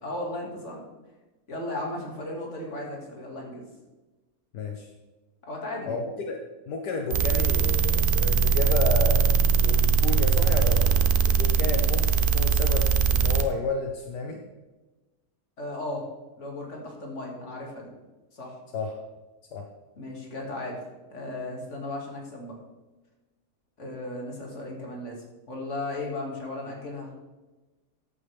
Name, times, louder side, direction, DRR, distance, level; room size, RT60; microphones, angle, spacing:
voice 1, 0.0-0.8 1.5-3.6 5.4-6.0 15.6-16.0 16.4-17.9 18.3-18.6 20.0-20.8 21.1-22.6 23.8-25.2 25.5-27.1, left 2 dB, 45° left, -1 dB, 2.6 m, -35 dB
voice 2, 4.5-4.9 5.9-6.4 6.7-10.9 11.3-14.4 18.7-18.9 19.5-19.7, left 3 dB, 75° left, 3 dB, 1.5 m, -31 dB
sound 1, 7.1-13.4, right 5 dB, 65° right, 0.5 m, -21 dB
14.0 x 8.7 x 3.5 m, 1.2 s
omnidirectional pair, 1.8 m